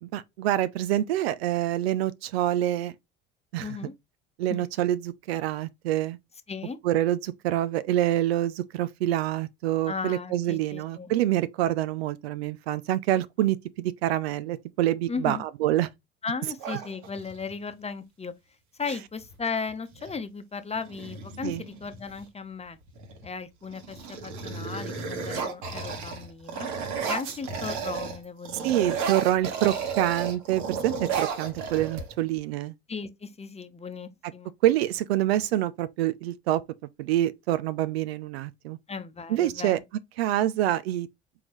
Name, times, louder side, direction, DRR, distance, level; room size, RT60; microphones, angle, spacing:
voice 1, 0.0-2.9 3.5-3.7 4.4-6.2 6.8-15.9 21.4-21.6 28.6-32.7 34.6-36.6 37.0-38.8 39.3-39.8 40.2-41.1, right 13 dB, 85° right, 0.5 m, -26 dB
voice 2, 3.6-3.9 4.5-4.7 6.5-6.8 9.9-11.1 15.1-15.4 16.2-18.3 18.8-22.8 23.2-26.7 27.1-28.9 31.4-31.5 32.9-34.5 38.9-39.8, left 5 dB, 20° left, 0.8 m, -36 dB
sound 1, 16.6-17.5 19.2-19.4 19.7-20.2 20.7-22.2 22.9-23.3 23.6-28.2 28.4-32.4, right 5 dB, 65° right, 1.4 m, -33 dB
4.5 x 3.9 x 3.0 m
hypercardioid pair, 60°, 30 cm